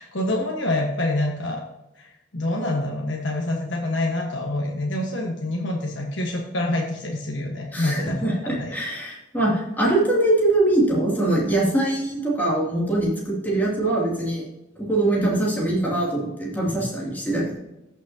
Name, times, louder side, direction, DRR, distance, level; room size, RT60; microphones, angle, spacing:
voice 1, 0.0-1.6 2.0-8.7, left 1 dB, 70° left, -1 dB, 1.4 m, -26 dB
voice 2, 7.7-14.4 14.8-17.6, right 1 dB, 10° left, -4 dB, 2.5 m, -23 dB
14.5 x 6.2 x 2.8 m, 0.96 s
head